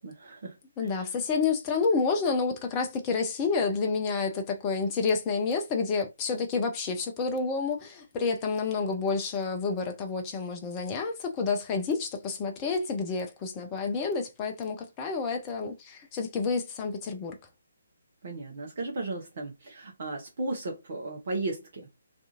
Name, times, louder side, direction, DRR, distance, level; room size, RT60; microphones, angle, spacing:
voice 1, 0.0-1.1 18.2-21.9, right 2 dB, 45° right, 0.6 m, -35 dB
voice 2, 0.8-17.4, left 4 dB, 20° left, 0.4 m, -29 dB
2.4 x 2.3 x 2.8 m
figure-of-eight pair, 140°, 0 cm